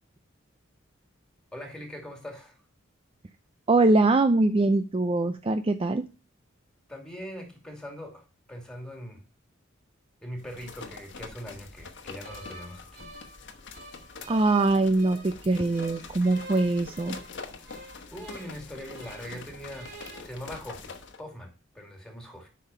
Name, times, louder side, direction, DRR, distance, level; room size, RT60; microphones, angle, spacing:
voice 1, 1.5-2.6 6.9-9.2 10.2-13.1 17.6-19.9 20.2-22.5, equal, 5° left, 3 dB, 2.4 m, -42 dB
voice 2, 3.7-6.0 14.3-17.2, right 2 dB, 30° right, 10 dB, 0.4 m, -23 dB
sound 1, 10.4-21.2, left 4 dB, 60° left, 1.2 m, -45 dB
sound 2, 12.2-15.4 15.7-19.4 19.7-20.2, right 2 dB, 55° right, 2.6 m, -47 dB
8.3 x 5.7 x 5.4 m, 0.32 s
head